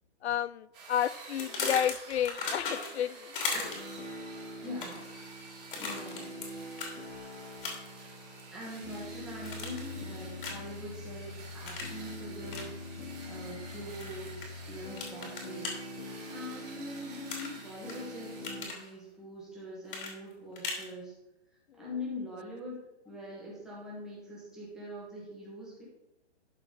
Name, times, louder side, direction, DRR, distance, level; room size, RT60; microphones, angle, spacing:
voice 1, 0.2-3.3, left 10 dB, 70° left, 19 dB, 0.5 m, -31 dB
sound 1, 0.7-19.0, right 3 dB, 20° right, 2.6 m, -50 dB
sound 2, 1.4-3.0 3.3-4.0 4.6-5.1 5.7-6.5 6.8-6.9 7.6-8.0 8.4-9.1 9.4-9.9 10.4-10.7 11.7-12.0 12.5-12.7 14.0-14.5 15.0-15.7 17.3-17.9 18.3-18.8 19.9-20.9, left 3 dB, 50° left, 2.7 m, -36 dB
sound 3, 3.7-18.6, left 2 dB, 90° left, 2.1 m, -44 dB
voice 2, 4.6-5.0 5.7-6.3 8.5-12.9 13.3-15.7 16.2-21.1 21.8-22.8 23.0-25.8, left 1 dB, ahead, -7 dB, 1.8 m, -43 dB
12.0 x 4.8 x 4.1 m, 0.90 s
hypercardioid pair, 170°, 34 cm